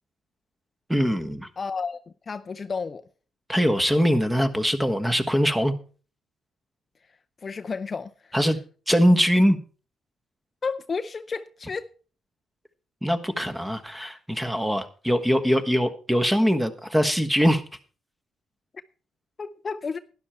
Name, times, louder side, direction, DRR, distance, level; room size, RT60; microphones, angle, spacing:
voice 1, 0.9-1.5 3.5-5.7 8.3-8.6 8.9-9.6 13.0-17.6, equal, 5° right, 1.3 m, -22 dB
voice 2, 1.6-3.0 7.4-8.4 10.6-11.9 19.4-20.0, left 5 dB, 35° left, 0.5 m, -32 dB
12.0 x 10.5 x 4.4 m
cardioid pair, 90°, 0 cm